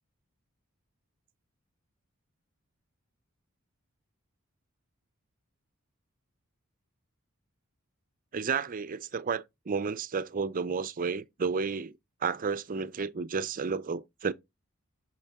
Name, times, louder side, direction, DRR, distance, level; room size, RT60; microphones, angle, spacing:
voice 1, 8.3-12.0 12.2-14.3, right 5 dB, 40° right, 0.5 m, -32 dB
6.4 x 5.4 x 3.4 m
head